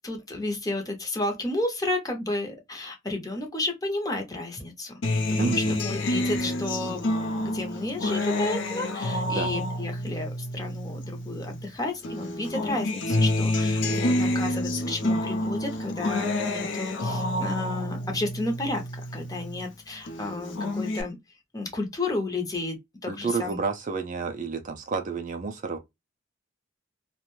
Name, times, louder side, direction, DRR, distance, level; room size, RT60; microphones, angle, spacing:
voice 1, 0.0-4.9 5.4-18.8 19.1-21.2 21.5-22.8 23.0-23.6, left 2 dB, 15° left, 0.6 m, -32 dB
Acoustic guitar, 5.0-11.7 12.0-19.7 20.1-21.0, left 1 dB, 60° left, 0.5 m, -28 dB
voice 2, 5.4-5.8 9.3-9.5 23.1-25.8, right 4 dB, 40° right, 0.3 m, -30 dB
2.5 x 2.1 x 3.0 m
head